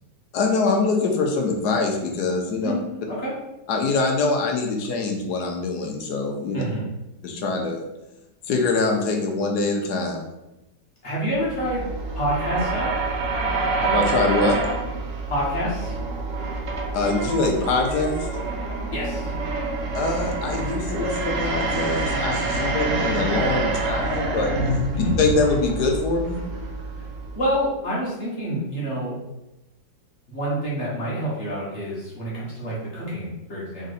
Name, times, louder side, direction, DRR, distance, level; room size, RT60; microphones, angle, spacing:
voice 1, 0.3-2.7 3.7-6.6 7.2-7.8 8.5-10.2 13.8-14.6 16.9-18.3 19.9-24.5 25.2-26.4, left 3 dB, 70° left, 2 dB, 1.2 m, -24 dB
voice 2, 2.6-3.3 6.5-6.8 11.0-11.9 12.1-12.9 15.3-16.0 18.9-19.3 24.9-25.1 27.3-29.1 30.3-33.9, equal, 40° left, -7 dB, 1.5 m, -27 dB
sound 1, 11.3-27.7, right 3 dB, 60° right, 0.9 m, -27 dB
3.8 x 3.2 x 4.0 m, 0.95 s
omnidirectional pair, 1.9 m